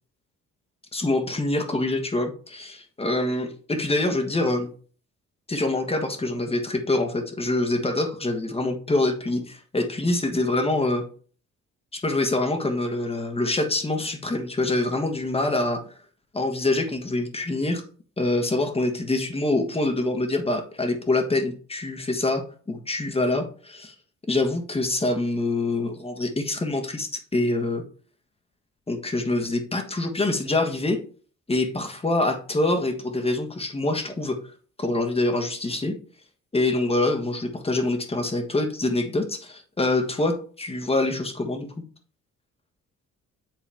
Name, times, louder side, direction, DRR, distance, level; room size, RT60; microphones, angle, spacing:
voice 1, 0.9-4.7 5.5-11.0 11.9-15.8 16.3-17.8 18.2-23.9 24.3-27.8 28.9-31.0 31.5-34.4 34.8-36.0 36.5-41.8, left 2 dB, 20° left, 6 dB, 1.3 m, -25 dB
7.5 x 3.9 x 3.5 m, 0.42 s
cardioid pair, 90°, 30 cm